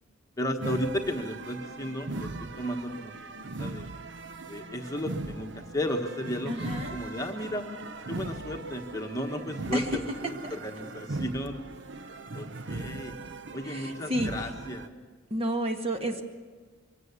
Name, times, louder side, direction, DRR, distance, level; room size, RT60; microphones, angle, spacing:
voice 1, 0.4-3.1 3.4-3.9 4.5-7.6 8.1-9.8 10.2-11.6 12.3-13.2 13.5-14.9, left 1 dB, 15° left, 3 dB, 1.4 m, -34 dB
sound 1, 0.6-14.9, right 2 dB, 65° right, 0.8 m, -39 dB
voice 2, 6.5-7.0 9.7-10.0 10.4-10.6 13.6-14.5 15.3-16.2, equal, 30° right, 4 dB, 1.7 m, -31 dB
23.0 x 17.0 x 8.3 m, 1.5 s
head